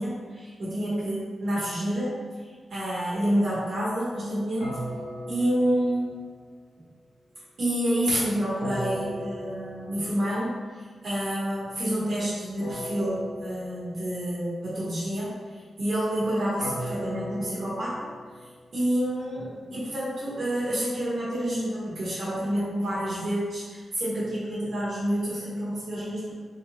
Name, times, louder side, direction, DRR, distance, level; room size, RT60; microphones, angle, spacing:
voice 1, 0.0-2.2 2.7-4.7 5.3-6.1 7.6-10.5 11.0-15.3 15.8-18.1 18.7-26.3, right 1 dB, 50° right, -9 dB, 1.4 m, -28 dB
sound 1, 4.6-6.7 8.6-10.4 12.6-14.4 16.6-18.8, equal, 60° left, 1.0 m, -37 dB
4.9 x 2.8 x 3.1 m, 1.5 s
wide cardioid pair, 175°, 0 cm